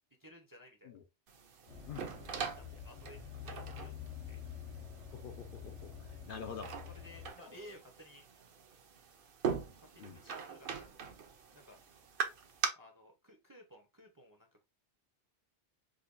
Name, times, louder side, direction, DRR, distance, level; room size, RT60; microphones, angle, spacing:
voice 1, 0.2-0.9 2.6-3.9 4.3-4.4 6.7-8.3 9.8-11.0 11.5-11.8 12.8-14.6, equal, 25° right, 0.5 m, -56 dB
sound 1, 1.3-12.7, right 6 dB, 55° right, 0.7 m, -42 dB
sound 2, 1.7-7.3, left 8 dB, 80° left, 1.2 m, -48 dB
voice 2, 5.1-6.7 7.4-7.5 10.0-10.2, left 6 dB, 60° left, 0.7 m, -47 dB
4.9 x 2.2 x 2.5 m
omnidirectional pair, 1.2 m